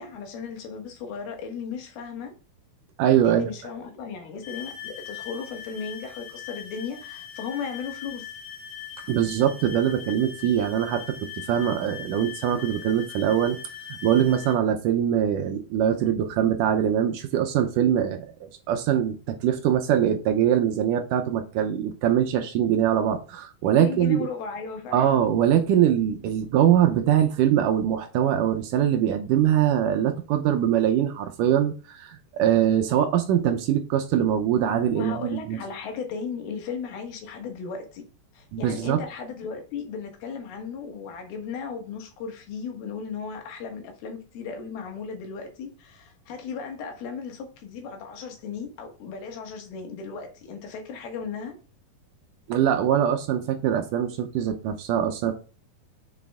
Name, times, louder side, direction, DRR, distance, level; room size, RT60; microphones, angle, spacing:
voice 1, 0.0-2.3 3.2-8.3 23.8-25.1 34.9-38.0 38.3-51.6, left 6 dB, 90° left, 3.3 m, -36 dB
voice 2, 3.0-3.5 9.1-11.2 11.5-13.6 14.0-24.3 24.9-35.6 38.5-39.0 52.5-55.3, right 10 dB, 75° right, 2.0 m, -23 dB
sound 1, 4.4-14.6, left 9 dB, 40° left, 2.0 m, -41 dB
6.7 x 6.4 x 3.6 m
omnidirectional pair, 4.2 m